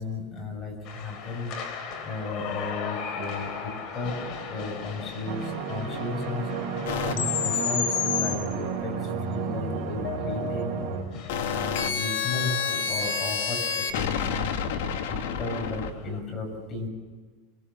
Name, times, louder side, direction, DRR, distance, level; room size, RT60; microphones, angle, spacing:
voice 1, 0.0-1.5 2.0-4.2 4.5-6.5 7.0-10.8 11.4-14.6 15.1-16.9, left 2 dB, 20° left, 1 dB, 6.9 m, -34 dB
sound 1, 0.8-16.2, left 6 dB, 35° left, 3.7 m, -40 dB
sound 2, 5.3-11.0, right 5 dB, 55° right, 5.3 m, -32 dB
sound 3, 6.9-8.4 10.0-15.9, left 7 dB, 75° left, 2.6 m, -29 dB
26.5 x 20.5 x 7.2 m, 1.5 s
supercardioid pair, 165°, 0 cm